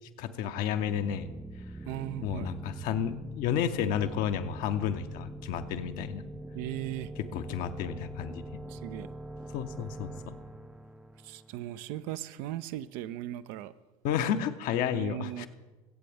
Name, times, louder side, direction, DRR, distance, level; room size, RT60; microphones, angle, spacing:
voice 1, 0.2-1.3 2.2-6.2 7.3-8.6 9.5-10.4 14.0-15.5, left 9 dB, 50° left, 0.9 m, -31 dB
sound 1, 0.6-12.1, right 1 dB, 5° right, 0.4 m, -44 dB
voice 2, 1.9-2.5 6.5-7.1 8.7-9.1 11.2-13.7 14.9-15.5, right 14 dB, 55° right, 0.5 m, -38 dB
22.0 x 8.4 x 3.4 m
figure-of-eight pair, 70°, 18 cm